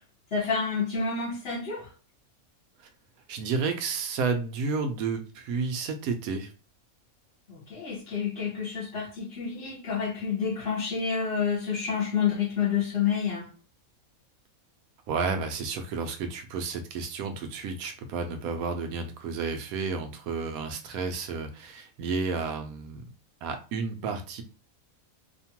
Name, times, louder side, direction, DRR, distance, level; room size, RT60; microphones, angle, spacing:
voice 1, 0.3-1.9 7.5-13.5, left 6 dB, 50° left, 1.1 m, -29 dB
voice 2, 3.3-6.5 15.1-23.0 23.4-24.4, right 4 dB, 90° right, 1.0 m, -31 dB
2.9 x 2.1 x 2.8 m
omnidirectional pair, 1.5 m